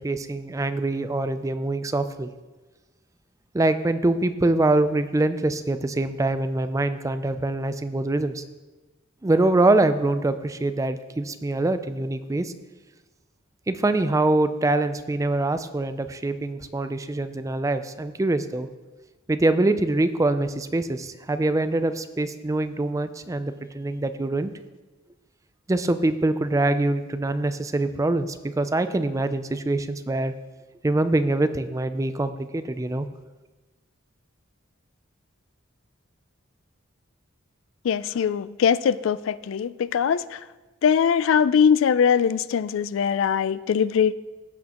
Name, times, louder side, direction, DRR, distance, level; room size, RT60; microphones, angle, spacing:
voice 1, 0.0-2.3 3.5-8.4 9.2-12.5 13.7-18.7 19.3-24.5 25.7-30.3 30.8-33.1, right 2 dB, 15° right, 11 dB, 0.4 m, -24 dB
voice 2, 37.8-40.4 40.8-44.1, left 7 dB, 75° left, 16 dB, 0.3 m, -21 dB
15.5 x 6.4 x 3.0 m, 1.2 s
head